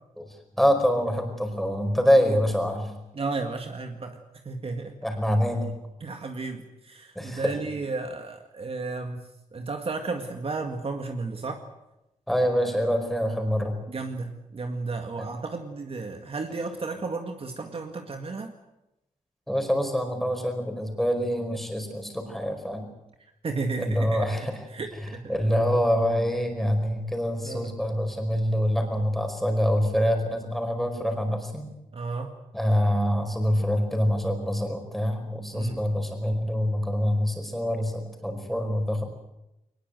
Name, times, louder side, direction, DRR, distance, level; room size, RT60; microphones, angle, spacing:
voice 1, 0.2-2.9 5.0-5.7 7.1-7.5 12.3-13.8 19.5-22.9 23.8-24.6 25.0-31.7 32.5-39.0, equal, ahead, 4 dB, 4.9 m, -25 dB
voice 2, 3.1-4.2 4.4-5.0 6.0-11.6 13.9-18.5 23.4-24.3 24.7-25.4 27.4-27.7 31.9-32.3 35.5-35.9, right 3 dB, 45° right, 4 dB, 2.0 m, -33 dB
22.0 x 20.5 x 8.1 m, 0.90 s
wide cardioid pair, 120°, 13 cm